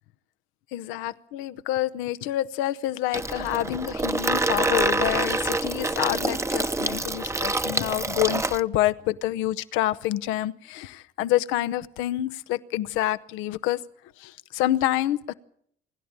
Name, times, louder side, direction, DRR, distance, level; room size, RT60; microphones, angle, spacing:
voice 1, 0.7-13.8 14.2-15.3, left 14 dB, 85° left, 0.8 m, -27 dB
Water tap faucet / Sink (filling or washing), 3.1-8.6, right 2 dB, 15° right, 0.9 m, -26 dB
27.0 x 11.5 x 8.8 m
supercardioid pair, 70°, 20 cm